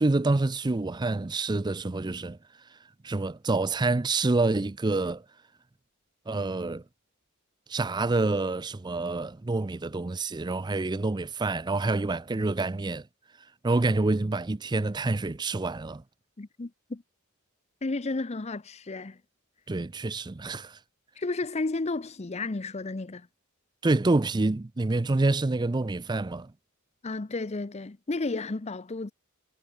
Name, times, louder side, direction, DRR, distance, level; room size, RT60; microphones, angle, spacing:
voice 1, 0.0-2.4 2.7-2.8 3.0-5.3 6.3-6.8 7.7-13.1 13.4-16.0 19.7-20.8 23.8-26.5, right 2 dB, 20° right, 0.4 m, -27 dB
voice 2, 16.4-17.0 17.8-19.2 21.2-23.3 27.0-29.1, left 3 dB, 30° left, 0.6 m, -32 dB
head